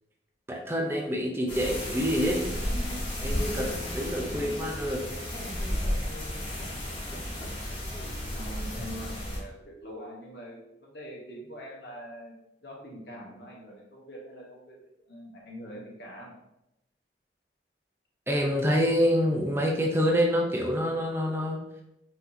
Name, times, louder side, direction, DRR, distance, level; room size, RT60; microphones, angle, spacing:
voice 1, 0.5-2.4 3.2-5.1 18.3-21.6, equal, 15° right, 0 dB, 0.6 m, -26 dB
sound 1, 1.5-9.4, equal, 30° left, 1.1 m, -33 dB
voice 2, 7.2-7.6 8.3-12.4 12.6-14.8 15.1-16.3, equal, 65° left, -3 dB, 1.2 m, -44 dB
5.6 x 2.9 x 2.6 m, 0.87 s
head